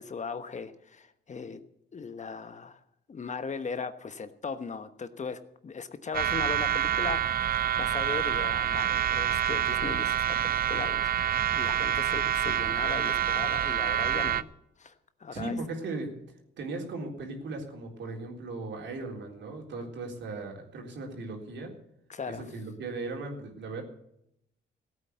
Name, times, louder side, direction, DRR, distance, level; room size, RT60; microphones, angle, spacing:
voice 1, 0.0-1.6 1.9-2.8 3.1-7.5 7.8-11.1 11.5-14.5 14.8-14.9 15.2-15.6 22.1-22.4, left 5 dB, 35° left, 11 dB, 1.2 m, -38 dB
sound 1, 6.1-14.4, right 10 dB, 50° right, 0.6 m, -27 dB
voice 2, 15.3-16.2 16.6-21.8 22.3-23.8, right 3 dB, 65° right, 2 dB, 3.8 m, -37 dB
16.0 x 8.8 x 8.2 m, 0.78 s
cardioid pair, 90°, 20 cm